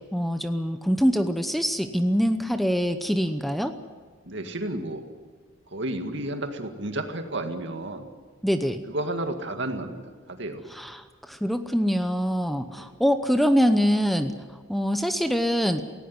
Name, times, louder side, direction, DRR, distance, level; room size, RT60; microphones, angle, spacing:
voice 1, 0.1-3.7 8.4-8.8 10.7-14.3 14.7-15.8, equal, ahead, 8 dB, 0.8 m, -24 dB
voice 2, 4.2-5.0 5.7-8.1 8.9-10.0 10.3-10.6 12.8-12.9, right 1 dB, 65° right, 6 dB, 2.0 m, -31 dB
18.5 x 16.5 x 9.6 m, 1.5 s
head